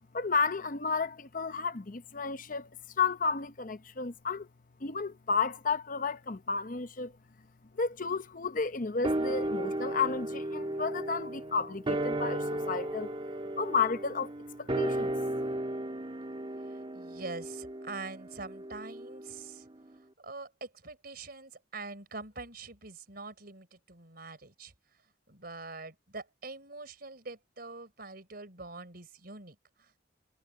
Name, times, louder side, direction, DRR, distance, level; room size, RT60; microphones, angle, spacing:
voice 1, 0.1-2.7 3.0-4.5 4.8-7.1 7.7-13.1 13.6-14.3 14.6-15.1, left 5 dB, 45° left, 0.8 m, -32 dB
sound 1, 9.0-19.6 19.9-20.0, right 1 dB, 30° right, 1.9 m, -35 dB
voice 2, 16.9-19.7 20.2-24.7 25.3-30.0, right 3 dB, 55° right, 4.5 m, -44 dB
head